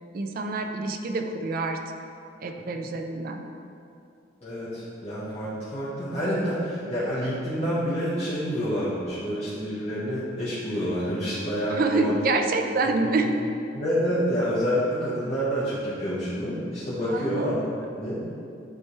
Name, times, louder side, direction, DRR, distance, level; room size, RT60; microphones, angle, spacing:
voice 1, 0.1-1.8 2.4-3.4 11.7-13.3 17.1-17.5, right 3 dB, 55° right, 5 dB, 0.4 m, -26 dB
voice 2, 4.4-12.1 12.8-13.3 13.7-17.6 18.0-18.2, equal, 40° left, -12 dB, 1.1 m, -28 dB
9.3 x 3.3 x 3.1 m, 2.5 s
head